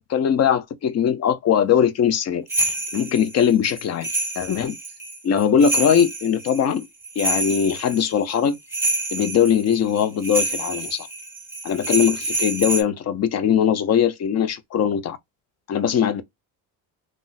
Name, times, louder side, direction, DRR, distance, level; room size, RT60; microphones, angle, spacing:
voice 1, 0.1-4.1 4.4-4.7 5.2-6.9 7.2-8.6 9.1-11.1 11.6-15.2 15.7-16.2, left 8 dB, 40° left, 0.5 m, -20 dB
sound 1, 2.5-12.8, right 2 dB, 5° right, 0.7 m, -27 dB
2.4 x 2.1 x 3.9 m
cardioid pair, 115°, 40 cm